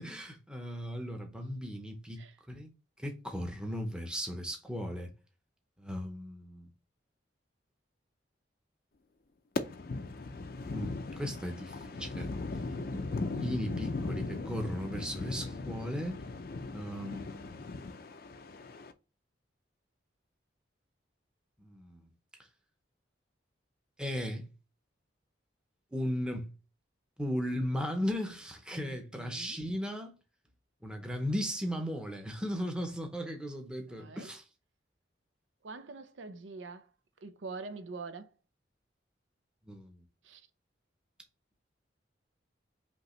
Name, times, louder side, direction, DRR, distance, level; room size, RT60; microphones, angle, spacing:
voice 1, 0.0-2.2 2.5-2.7 3.0-5.1 5.8-6.7 10.7-12.3 13.3-16.2 16.7-17.5 21.6-22.0 24.0-24.5 25.9-26.5 27.2-30.1 30.8-34.4 39.7-40.0, equal, 5° right, 0.7 m, -36 dB
sound 1, 9.6-18.9, left 3 dB, 50° left, 0.4 m, -38 dB
voice 2, 12.8-13.8 28.7-29.6 33.9-34.3 35.6-36.9 37.2-38.3 40.2-40.5, right 3 dB, 80° right, 0.5 m, -45 dB
5.3 x 2.9 x 3.0 m
head